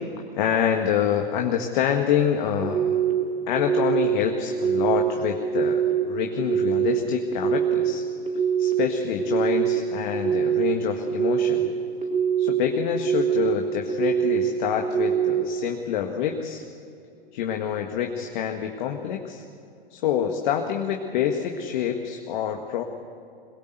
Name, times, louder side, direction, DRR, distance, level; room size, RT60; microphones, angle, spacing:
voice 1, 0.4-3.0 3.5-5.8 6.1-8.1 8.6-11.7 12.4-16.6 17.3-19.4 19.9-22.8, left 9 dB, 50° left, 3 dB, 1.9 m, -26 dB
sound 1, 2.6-3.1 3.6-4.1 4.5-5.0 5.4-5.9 6.4-6.9 7.3-7.8 8.3-8.7 9.2-9.7 10.1-10.6 11.1-11.6 12.0-12.5 12.9-13.4 13.9-14.4 14.8-15.3, right 8 dB, 20° right, 4.0 m, -23 dB
22.0 x 21.0 x 8.1 m, 2.5 s
figure-of-eight pair, 105°, 29 cm